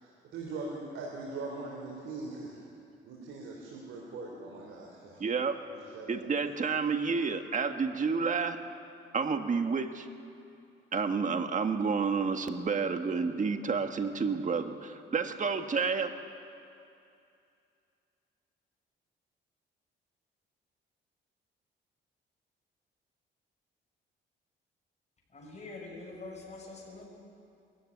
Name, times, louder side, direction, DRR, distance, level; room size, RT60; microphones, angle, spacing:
voice 1, 0.0-2.6 3.0-5.2 5.7-6.3, right 3 dB, 85° right, 3.8 m, -41 dB
voice 2, 5.2-5.6 6.1-8.6 9.1-10.1 10.9-16.1, right 5 dB, 40° right, 1.6 m, -30 dB
voice 3, 25.3-27.0, left 3 dB, 35° left, 6.4 m, -45 dB
21.0 x 14.5 x 9.5 m
cardioid pair, 90°, 20 cm